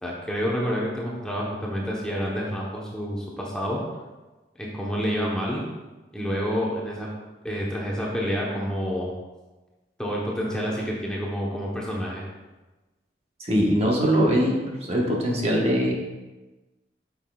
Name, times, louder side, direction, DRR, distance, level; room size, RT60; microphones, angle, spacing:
voice 1, 0.0-3.8 4.6-5.6 6.1-7.1 7.4-9.1 10.0-12.2, equal, 5° left, -4 dB, 0.9 m, -28 dB
voice 2, 13.4-15.9, equal, 35° right, -2 dB, 1.1 m, -22 dB
8.9 x 5.9 x 2.3 m, 1.2 s
head